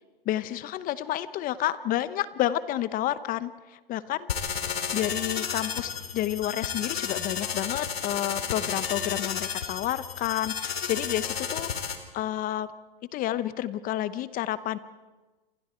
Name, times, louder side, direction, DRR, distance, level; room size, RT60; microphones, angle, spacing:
voice 1, 0.3-4.6 4.9-12.7 13.1-14.8, left 13 dB, 30° left, 15 dB, 0.9 m, -30 dB
sound 1, 4.3-12.0, left 7 dB, 80° left, 2.9 m, -32 dB
28.5 x 27.0 x 4.5 m, 1.2 s
hypercardioid pair, 125°, 30 cm